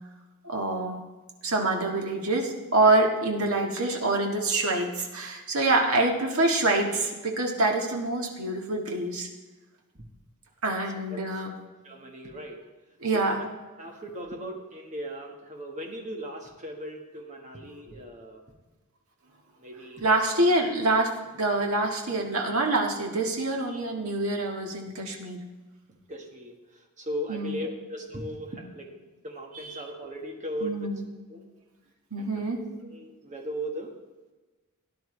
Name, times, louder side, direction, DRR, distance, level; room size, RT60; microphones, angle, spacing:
voice 1, 0.4-1.0 1.4-9.3 10.6-11.6 13.0-13.4 20.0-25.4 27.3-27.6 30.6-31.0 32.1-32.6, right 2 dB, 80° right, 1 dB, 1.7 m, -26 dB
voice 2, 11.6-12.7 13.1-13.5 13.8-18.4 19.6-20.0 20.3-20.4 25.9-29.0 29.2-30.9 31.3-31.6 32.2-34.0, equal, 35° right, 2 dB, 1.6 m, -38 dB
17.5 x 10.5 x 3.3 m, 1.2 s
head